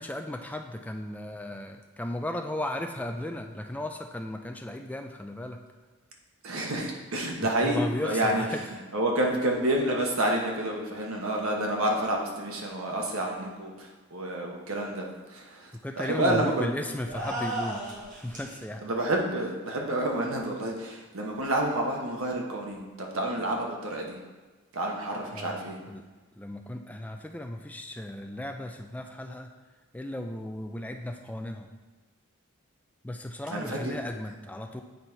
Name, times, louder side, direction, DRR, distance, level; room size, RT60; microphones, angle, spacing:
voice 1, 0.0-5.6 7.4-8.7 15.7-17.8 18.1-18.8 25.3-26.0 26.4-29.5 29.9-31.7 33.0-34.8, left 1 dB, 5° left, 4 dB, 0.4 m, -35 dB
voice 2, 6.4-8.4 8.9-16.7 18.8-24.2 24.7-25.8 33.5-34.0, right 1 dB, 70° right, 0 dB, 1.1 m, -29 dB
sound 1, 17.0-18.6, right 1 dB, 35° right, 1.5 m, -34 dB
8.0 x 4.1 x 4.4 m, 1.3 s
head